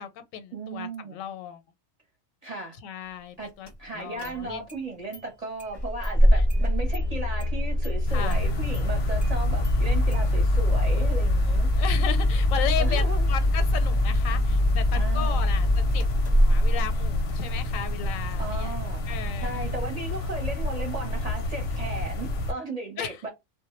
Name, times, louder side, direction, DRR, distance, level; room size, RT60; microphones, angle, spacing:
voice 1, 0.0-1.6 2.8-4.7 6.3-6.4 8.1-8.5 11.8-18.7 19.1-19.7 23.0-23.2, left 9 dB, 85° left, 1.0 m, -35 dB
voice 2, 0.5-1.2 2.4-2.8 3.4-3.5 3.8-11.7 12.8-13.3 14.9-15.5 18.4-19.0 19.4-23.3, right 2 dB, 35° right, 0.7 m, -35 dB
Engine starting, 3.7-3.8 4.2-4.8 5.1-5.2 5.6-17.5, left 1 dB, 25° left, 0.5 m, -23 dB
sound 1, 8.1-22.5, left 2 dB, 60° left, 0.7 m, -30 dB
2.1 x 2.1 x 2.9 m
omnidirectional pair, 1.4 m